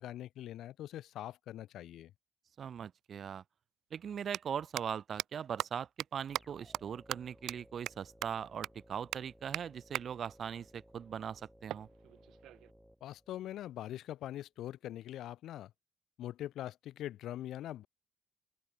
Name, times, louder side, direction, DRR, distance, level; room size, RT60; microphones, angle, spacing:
voice 1, 0.0-2.1 13.0-15.7 16.2-17.9, left 13 dB, 80° left, 1.1 m, -43 dB
voice 2, 2.6-3.4 3.9-11.9, right 8 dB, 55° right, 0.9 m, -40 dB
sound 1, 3.0-3.1 4.2-4.4 4.8-4.9 5.2-5.3 5.6-5.7 6.0-6.1 6.3-6.4 6.7-6.8 7.1-7.2 7.5-7.6 7.9-8.0 8.2-8.3 8.6-8.7 9.1-9.2 9.5-9.6 9.9-10.0 11.7-12.7, right 14 dB, 85° right, 0.8 m, -38 dB
sound 2, 6.3-13.8, equal, 5° right, 4.6 m, -61 dB
open air
cardioid pair, 90°, 0 cm